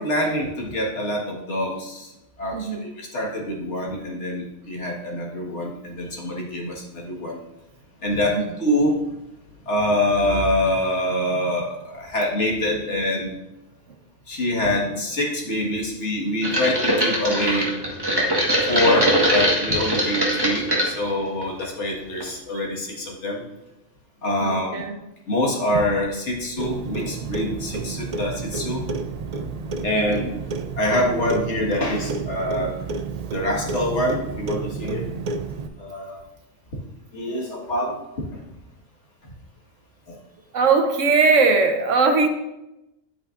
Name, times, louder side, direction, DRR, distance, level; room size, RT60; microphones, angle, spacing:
voice 1, 0.0-2.1 2.4-7.4 8.0-9.0 9.7-13.4 14.3-17.7 18.7-23.4 24.2-24.8 25.3-28.8 29.8-30.2 30.8-32.7 33.3-35.1 35.8-36.2 37.1-38.0 40.1-40.2, left 1 dB, 70° left, -2 dB, 2.0 m, -25 dB
voice 2, 2.5-2.8 8.3-8.5 22.3-22.6 24.4-25.0 29.9-30.3 40.5-42.3, right 4 dB, 90° right, 5 dB, 1.3 m, -20 dB
sound 1, 16.4-20.9 21.4-21.9 22.2-22.3, right 1 dB, 20° right, 1.5 m, -21 dB
Clock, 26.6-35.7, right 4 dB, 50° right, 0.4 m, -30 dB
10.0 x 8.4 x 2.5 m, 0.93 s
omnidirectional pair, 1.2 m